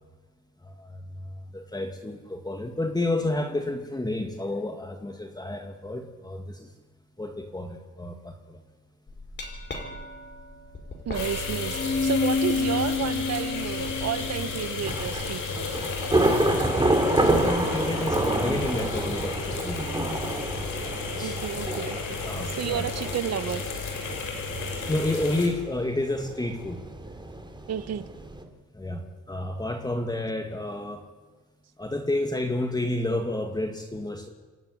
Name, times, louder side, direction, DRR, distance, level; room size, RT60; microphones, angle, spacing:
voice 1, 0.6-6.7 7.2-8.6 17.1-20.4 21.2-21.4 22.1-22.9 24.9-26.8 28.7-31.0 31.8-34.3, left 2 dB, 15° left, 2.2 m, -30 dB
Glass, 9.1-15.2, left 4 dB, 35° left, 5.4 m, -30 dB
sound 1, 11.1-25.5, left 4 dB, 75° left, 5.6 m, -33 dB
voice 2, 11.1-15.7 21.2-22.2 22.5-23.7 27.7-28.1, right 9 dB, 60° right, 1.3 m, -31 dB
Thunder / Rain, 14.9-28.4, right 1 dB, 15° right, 3.1 m, -29 dB
28.0 x 12.5 x 9.8 m
cardioid pair, 90°, 30 cm